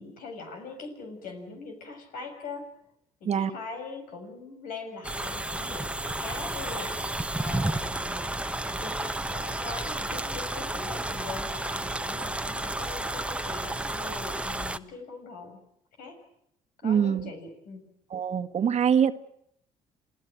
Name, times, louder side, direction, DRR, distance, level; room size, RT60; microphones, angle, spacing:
voice 1, 0.0-2.7 3.2-15.6 16.0-16.2 16.8-17.9, left 4 dB, 75° left, 5 dB, 6.8 m, -42 dB
sound 1, 5.0-14.8, right 1 dB, 10° right, 1.2 m, -32 dB
voice 2, 16.8-17.3 18.1-19.1, right 8 dB, 50° right, 11 dB, 1.4 m, -24 dB
28.0 x 17.0 x 9.1 m, 0.73 s
supercardioid pair, 70°, 15 cm